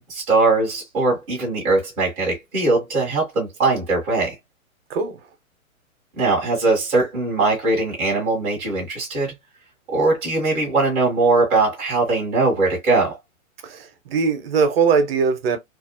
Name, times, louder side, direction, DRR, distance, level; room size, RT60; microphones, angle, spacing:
voice 1, 0.0-4.4 6.2-9.3 9.9-13.2, right 3 dB, 10° right, 0.4 m, -20 dB
voice 2, 13.6-15.6, right 5 dB, 45° right, 0.7 m, -20 dB
2.5 x 2.0 x 2.4 m
hypercardioid pair, 130°, 42 cm